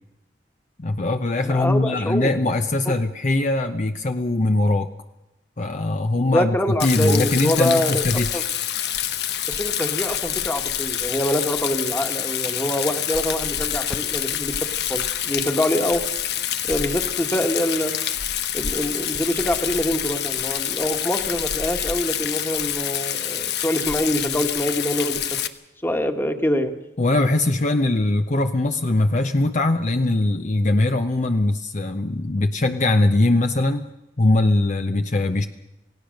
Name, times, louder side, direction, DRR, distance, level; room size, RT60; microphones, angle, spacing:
voice 1, 0.8-4.9 5.6-6.6 6.8-8.5 27.0-33.9 34.2-35.5, left 2 dB, 45° left, 6 dB, 0.8 m, -21 dB
voice 2, 1.4-2.3 6.2-8.0 8.3-8.4 9.5-16.0 16.7-17.9 18.5-25.5 25.8-26.7, equal, 15° left, 6 dB, 1.6 m, -25 dB
Rain, 6.8-25.5, left 10 dB, 70° left, 1.1 m, -27 dB
28.0 x 17.0 x 6.5 m, 0.96 s
head